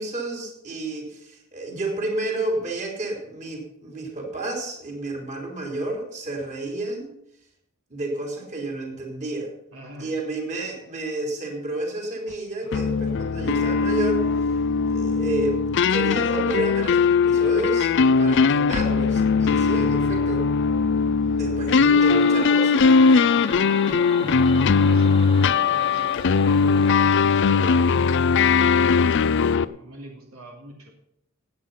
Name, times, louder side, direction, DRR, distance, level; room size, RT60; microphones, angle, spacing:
voice 1, 0.0-7.1 7.9-9.5 10.0-14.2 14.9-15.6 15.9-17.9 18.2-20.4 21.3-22.8, right 2 dB, 35° right, 0 dB, 3.8 m, -30 dB
voice 2, 9.7-10.1 19.7-20.0 21.8-22.1 23.5-30.9, equal, 75° right, 0 dB, 2.9 m, -42 dB
sound 1, 12.7-29.6, left 5 dB, 60° left, 0.5 m, -20 dB
sound 2, 21.9-29.6, left 2 dB, 25° left, 1.4 m, -38 dB
16.5 x 9.1 x 5.7 m, 0.76 s
head